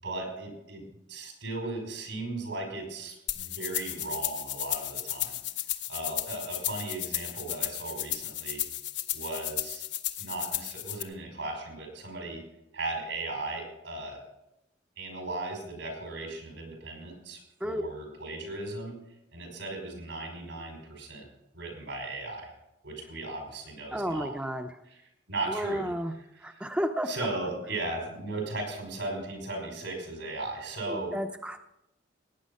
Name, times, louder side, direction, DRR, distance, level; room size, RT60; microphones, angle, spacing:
voice 1, 0.0-5.4 5.9-8.7 9.1-9.9 10.2-12.4 12.7-14.2 15.0-19.0 19.3-21.2 21.5-22.5 22.8-24.3 24.9-25.0 25.3-25.9 26.4-26.7 27.1-31.2, right 2 dB, 85° right, 2 dB, 5.4 m, -37 dB
sound 1, 3.3-11.0, left 13 dB, 65° left, 1.0 m, -34 dB
voice 2, 23.9-24.7 25.5-26.1 26.4-27.1 30.9-31.6, equal, 5° right, 5 dB, 0.6 m, -32 dB
18.5 x 9.3 x 5.5 m, 0.87 s
head